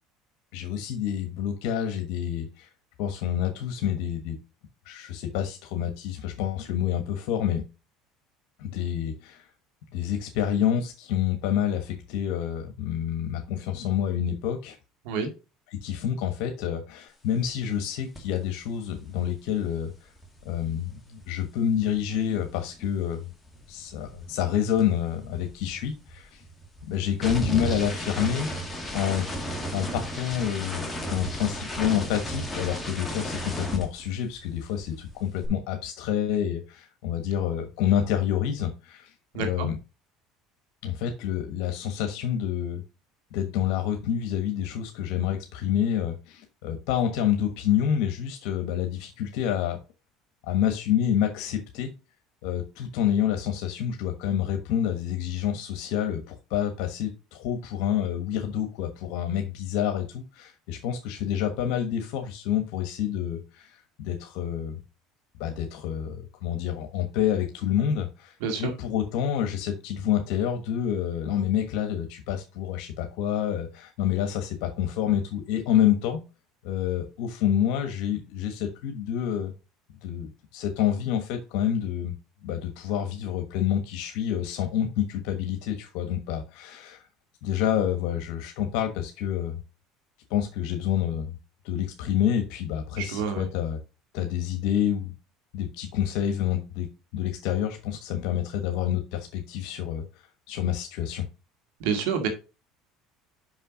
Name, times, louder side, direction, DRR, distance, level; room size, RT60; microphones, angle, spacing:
voice 1, 0.5-2.7 3.0-4.4 4.8-7.6 8.6-9.5 9.9-14.8 15.7-20.1 20.4-23.3 23.7-26.4 26.9-28.5 28.9-29.2 29.7-39.8 40.8-42.8 43.3-49.8 50.4-51.9 52.4-64.8 65.4-76.2 76.6-79.5 80.0-82.1 82.4-87.0 87.4-89.6 90.3-91.4 91.6-93.8 94.1-95.1 95.5-96.9 97.1-100.0 100.5-101.2, left 9 dB, 75° left, 5 dB, 1.3 m, -28 dB
sound 1, 18.1-18.4 18.6-23.0 23.3-34.6 34.8-35.5, equal, 5° left, 1.9 m, -35 dB
voice 2, 39.3-39.7 68.4-68.7 93.0-93.5 101.8-102.3, right 6 dB, 80° right, 6 dB, 2.1 m, -28 dB
5.9 x 5.6 x 5.0 m, 0.30 s
supercardioid pair, 120°, 0 cm